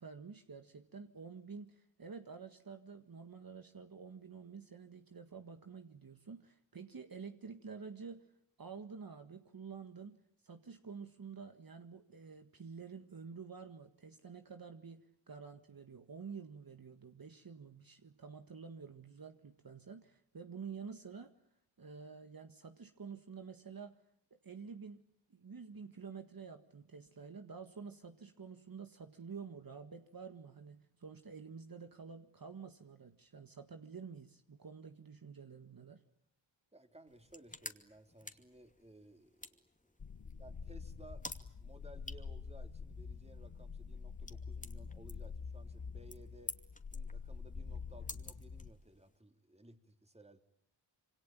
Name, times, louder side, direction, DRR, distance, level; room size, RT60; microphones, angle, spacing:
voice 1, 0.0-8.3 8.6-21.3 21.8-24.0 24.3-25.0 25.3-36.0, right 5 dB, 50° right, 7 dB, 1.8 m, -49 dB
voice 2, 36.7-39.6 40.0-40.1 40.4-41.3 41.6-46.6 46.9-50.4, right 1 dB, 15° right, 6 dB, 3.2 m, -59 dB
sound 1, 37.1-49.2, left 2 dB, 15° left, 2.5 m, -52 dB
sound 2, 40.0-48.7, left 5 dB, 45° left, 1.8 m, -46 dB
27.0 x 24.5 x 8.9 m, 0.70 s
cardioid pair, 55°, 46 cm